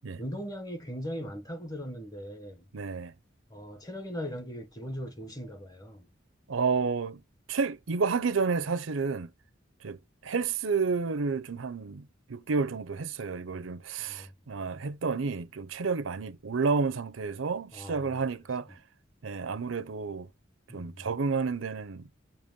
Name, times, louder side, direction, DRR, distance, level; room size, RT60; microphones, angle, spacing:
voice 1, 0.2-2.7 3.5-6.1 14.0-14.3 17.7-18.2 18.7-18.8 20.7-21.1, equal, 20° left, 0.8 m, -39 dB
voice 2, 2.7-3.1 6.5-7.2 7.5-9.3 9.8-18.7 19.2-20.3 20.7-22.1, right 4 dB, 85° right, 0.6 m, -30 dB
6.8 x 3.0 x 5.1 m
head